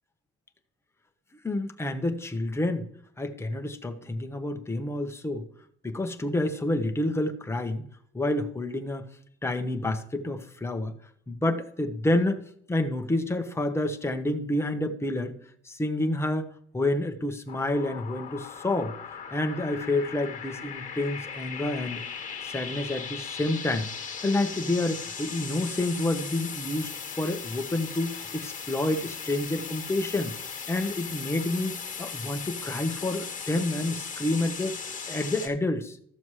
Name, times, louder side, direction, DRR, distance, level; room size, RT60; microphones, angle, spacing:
voice 1, 1.4-2.9 3.2-5.4 5.8-7.8 8.1-9.0 9.4-10.9 11.3-12.4 12.7-15.3 15.6-18.9 19.3-22.0 22.4-23.9 24.2-26.9 27.2-30.3 30.7-34.8 35.1-36.0, left 1 dB, 10° left, 5 dB, 0.9 m, -29 dB
sound 1, 17.5-35.5, left 6 dB, 25° left, 1.7 m, -38 dB
13.5 x 7.1 x 3.2 m, 0.64 s
cardioid pair, 145°, 29 cm